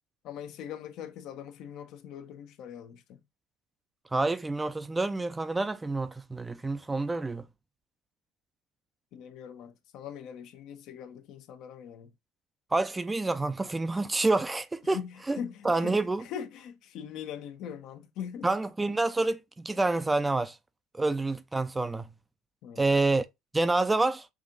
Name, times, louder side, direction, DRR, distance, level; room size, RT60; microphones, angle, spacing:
voice 1, 0.2-3.2 9.1-12.1 14.8-18.5 22.6-23.0, left 8 dB, 65° left, 0.8 m, -42 dB
voice 2, 4.1-7.5 12.7-15.0 15.3-15.4 15.6-16.2 18.4-20.6 20.9-22.1 22.8-23.3 23.5-24.3, right 2 dB, 15° right, 0.5 m, -28 dB
6.0 x 2.6 x 2.5 m
supercardioid pair, 85°, 0 cm